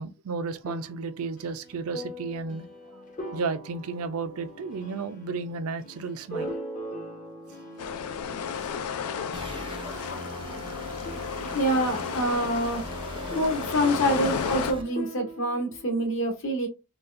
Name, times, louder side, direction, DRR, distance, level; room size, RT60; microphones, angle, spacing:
voice 1, 0.0-2.7 3.3-6.5, right 4 dB, 75° right, 0.5 m, -33 dB
sound 1, 0.6-10.6 10.9-16.0, equal, 35° left, 0.7 m, -42 dB
sound 2, 7.8-14.7, left 7 dB, 85° left, 0.4 m, -33 dB
sound 3, 9.3-14.8, right 2 dB, 25° right, 0.4 m, -39 dB
voice 2, 11.5-12.8 13.3-16.7, equal, 60° left, 1.3 m, -26 dB
4.0 x 2.3 x 2.4 m
head